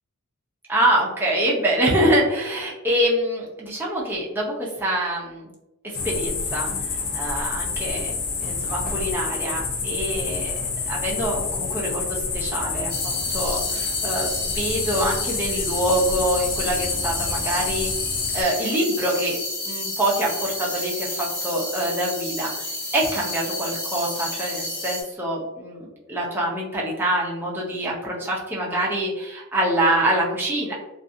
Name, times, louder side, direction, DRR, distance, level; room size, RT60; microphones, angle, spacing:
voice 1, 0.7-5.5 5.8-10.5 10.9-17.9 18.3-19.4 19.6-30.7, right 1 dB, 10° right, -4 dB, 0.6 m, -25 dB
sound 1, 5.9-18.4, left 4 dB, 40° left, 0.4 m, -28 dB
sound 2, 12.9-25.0, left 1 dB, 15° left, 0.9 m, -31 dB
2.6 x 2.4 x 2.5 m, 0.94 s
head